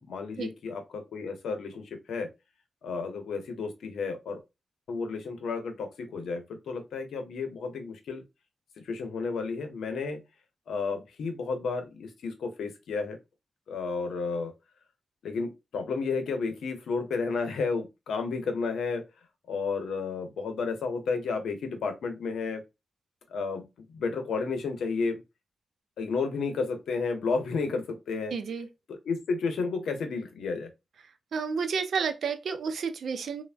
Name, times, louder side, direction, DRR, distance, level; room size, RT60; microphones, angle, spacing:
voice 1, 0.0-2.3 2.8-4.4 4.9-8.2 8.8-10.2 10.7-13.2 13.7-14.5 15.2-19.1 19.5-22.6 23.3-25.2 26.0-28.3 28.9-30.7, left 4 dB, 90° left, 0.7 m, -32 dB
voice 2, 28.3-28.7 31.3-33.4, right 5 dB, 75° right, 0.4 m, -30 dB
3.3 x 2.1 x 2.4 m
cardioid pair, 80°, 0 cm